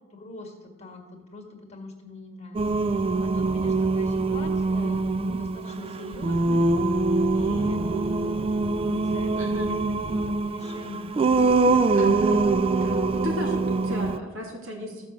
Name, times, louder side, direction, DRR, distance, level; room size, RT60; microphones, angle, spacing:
voice 1, 0.1-6.7 7.3-11.2, left 2 dB, 35° left, 3 dB, 1.8 m, -42 dB
Singing, 2.5-14.2, right 3 dB, 30° right, 0.3 m, -24 dB
voice 2, 9.4-9.8 11.9-12.5 12.8-15.1, left 1 dB, 80° right, -1 dB, 3.2 m, -34 dB
14.5 x 5.9 x 7.2 m, 1.3 s
head